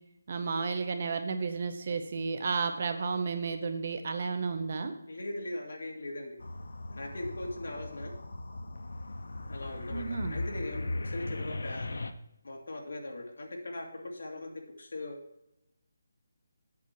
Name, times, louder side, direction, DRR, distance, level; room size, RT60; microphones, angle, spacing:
voice 1, 0.3-4.9 9.9-10.4, right 4 dB, 35° right, 8 dB, 0.7 m, -32 dB
voice 2, 5.1-6.4 6.9-8.1 9.5-11.9 12.4-15.2, left 1 dB, 60° left, 1 dB, 2.2 m, -40 dB
sound 1, 6.4-12.1, left 2 dB, 80° left, 0.8 m, -38 dB
8.4 x 7.1 x 4.7 m, 0.82 s
hypercardioid pair, 180°, 0 cm